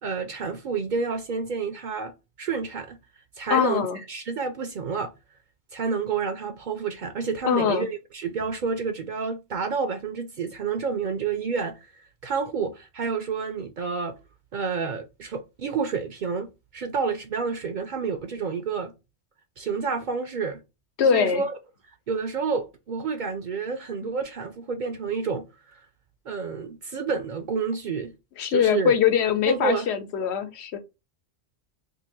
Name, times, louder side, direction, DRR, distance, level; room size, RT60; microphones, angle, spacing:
voice 1, 0.0-3.0 3.4-5.1 5.7-11.8 12.2-14.1 14.5-18.9 19.6-20.6 21.1-21.5 22.1-25.8 26.3-28.1 28.5-28.9 29.5-29.9, right 5 dB, 55° right, 0.6 m, -29 dB
voice 2, 3.5-4.0 7.4-7.9 21.0-21.4 28.4-30.8, left 8 dB, 75° left, 0.9 m, -22 dB
2.7 x 2.6 x 4.2 m
omnidirectional pair, 1.1 m